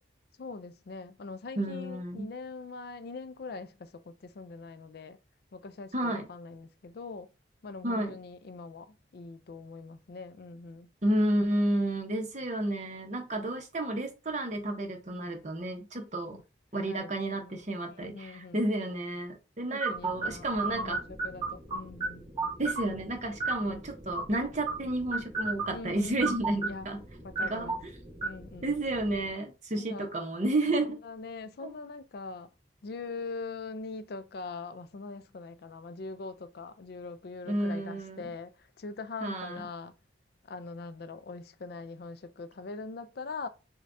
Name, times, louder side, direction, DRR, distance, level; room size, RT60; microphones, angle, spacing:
voice 1, 0.4-5.2 5.5-7.3 7.6-10.9 16.3-16.4 16.9-17.6 17.9-18.7 19.7-22.3 25.7-26.4 26.6-26.9 27.2-27.8 28.2-28.8 29.7-30.1 30.7-32.5 32.8-40.0 40.5-43.5, left 3 dB, 55° left, 0.4 m, -42 dB
voice 2, 1.6-2.3 5.9-6.2 7.8-8.1 11.0-16.4 16.7-21.0 22.6-27.0 27.4-27.7 28.6-31.0 31.6-31.7 37.5-38.2 39.2-39.6, right 1 dB, 40° right, 0.9 m, -31 dB
sound 1, 19.8-29.3, right 3 dB, 25° right, 1.7 m, -36 dB
6.4 x 2.3 x 2.6 m
head